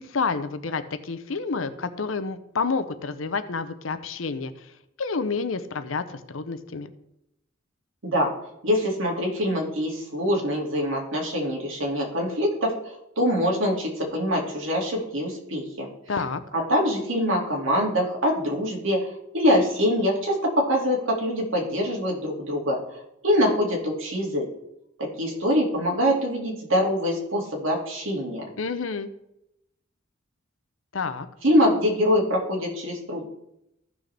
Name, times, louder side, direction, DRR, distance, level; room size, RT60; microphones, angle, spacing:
voice 1, 0.0-4.7 5.0-6.9 16.1-16.4 28.6-29.1 30.9-31.3, left 4 dB, 80° left, 11 dB, 0.8 m, -29 dB
voice 2, 8.6-15.9 16.5-24.4 25.0-28.4 31.4-33.2, equal, 75° right, -1 dB, 2.5 m, -24 dB
14.5 x 6.2 x 3.5 m, 0.83 s
head